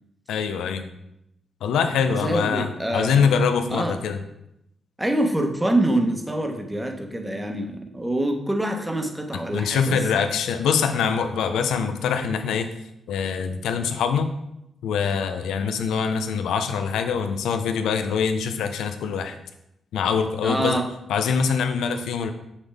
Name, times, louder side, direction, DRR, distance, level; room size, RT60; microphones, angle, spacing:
voice 1, 0.3-0.9 1.6-4.2 9.5-12.7 13.1-14.3 14.8-19.4 19.9-20.8 21.1-22.3, left 6 dB, 85° left, 8 dB, 0.6 m, -24 dB
voice 2, 2.2-3.2 3.7-4.0 5.0-10.0 20.4-20.9, right 1 dB, 10° right, 3 dB, 1.1 m, -25 dB
6.2 x 5.6 x 3.4 m, 0.83 s
supercardioid pair, 60°, 0 cm